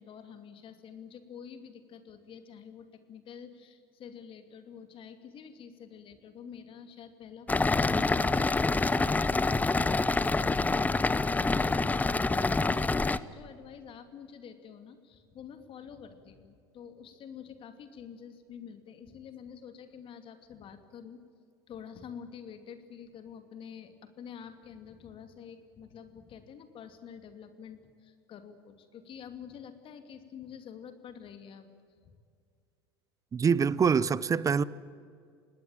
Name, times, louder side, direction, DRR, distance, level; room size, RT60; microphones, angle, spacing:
voice 1, 0.0-21.2 21.7-31.7 32.1-32.2, left 7 dB, 40° left, 8 dB, 2.6 m, -48 dB
sound 1, 7.5-13.2, left 3 dB, 10° left, 0.8 m, -26 dB
voice 2, 33.3-34.6, right 6 dB, 25° right, 20 dB, 0.8 m, -25 dB
25.5 x 19.0 x 9.2 m, 2.3 s
hypercardioid pair, 80°, 13 cm